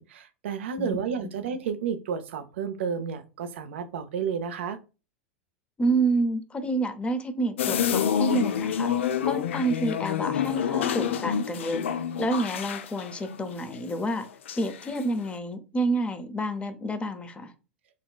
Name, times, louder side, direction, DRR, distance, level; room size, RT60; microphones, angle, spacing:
voice 1, 0.0-4.8, right 6 dB, 75° right, 0.5 m, -31 dB
voice 2, 5.8-8.9 9.2-14.3 14.6-17.5, right 2 dB, 20° left, 0.6 m, -29 dB
sound 1, 7.6-14.2 14.5-15.0, left 8 dB, 80° left, 0.3 m, -28 dB
3.8 x 2.3 x 2.3 m
hypercardioid pair, 95°, 7 cm